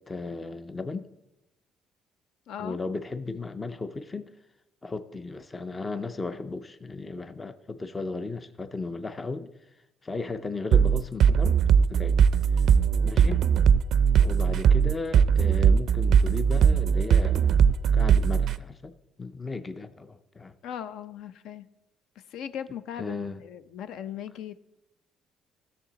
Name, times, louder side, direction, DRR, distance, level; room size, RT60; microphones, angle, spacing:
voice 1, 0.1-1.1 2.6-4.3 4.8-9.5 10.0-11.6 11.9-12.2 13.0-13.4 14.2-17.5 17.9-18.9 19.2-20.6 23.0-23.4, left 3 dB, 15° left, 11 dB, 0.4 m, -35 dB
voice 2, 2.5-2.8 20.6-21.7 22.3-24.5, left 9 dB, 70° left, 12 dB, 0.6 m, -38 dB
sound 1, 10.7-18.6, right 7 dB, 50° right, 0.4 m, -20 dB
16.5 x 6.8 x 4.0 m, 0.96 s
cardioid pair, 175°, 0 cm